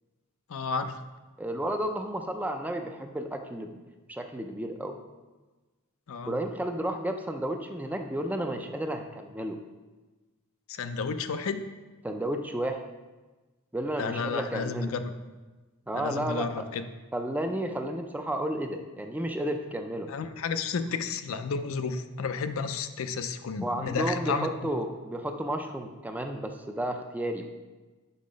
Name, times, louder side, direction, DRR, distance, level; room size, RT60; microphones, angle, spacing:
voice 1, 0.5-1.0 6.1-6.3 10.7-11.6 14.0-15.1 15.9-16.9 20.1-24.7, left 5 dB, 65° left, 9 dB, 0.4 m, -32 dB
voice 2, 1.4-3.8 4.1-5.0 6.3-9.6 12.0-12.8 13.7-14.9 15.9-16.5 17.1-20.1 23.6-27.5, right 1 dB, 5° right, 5 dB, 0.4 m, -32 dB
5.7 x 5.6 x 5.1 m, 1.2 s
head